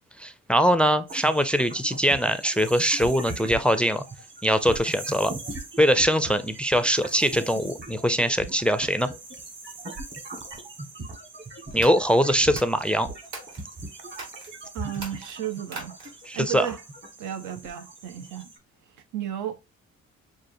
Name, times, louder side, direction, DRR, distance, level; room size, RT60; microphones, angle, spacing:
voice 1, 0.2-4.0 4.4-5.3 5.8-9.1 11.7-13.1 16.3-16.7, equal, 5° left, 0.4 m, -22 dB
sound 1, 1.1-18.6, right 2 dB, 40° right, 1.5 m, -40 dB
sound 2, 11.7-13.7 14.1-14.5 14.9-16.3, right 3 dB, 65° right, 2.1 m, -41 dB
voice 2, 14.7-16.0 16.3-16.8 17.2-18.5 19.1-19.6, right 10 dB, 85° right, 0.7 m, -33 dB
6.2 x 2.5 x 2.6 m
cardioid pair, 90°, 30 cm